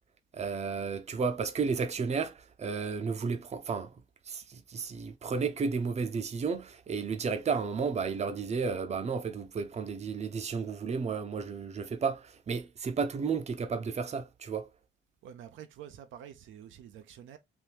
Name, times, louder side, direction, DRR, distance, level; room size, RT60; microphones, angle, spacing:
voice 1, 0.3-3.9 4.3-14.7, right 5 dB, 35° right, 0.6 m, -32 dB
voice 2, 15.2-17.4, right 9 dB, 75° right, 0.5 m, -48 dB
3.5 x 2.6 x 2.8 m
cardioid pair, 90°, 20 cm